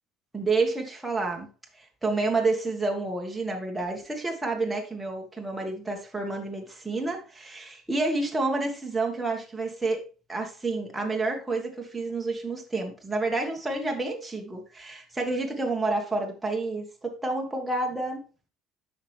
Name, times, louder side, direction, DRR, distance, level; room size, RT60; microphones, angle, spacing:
voice 1, 0.3-1.5 1.8-10.0 10.3-18.2, right 3 dB, 10° right, 1.6 m, -29 dB
8.7 x 5.9 x 3.3 m
cardioid pair, 145°, 0 cm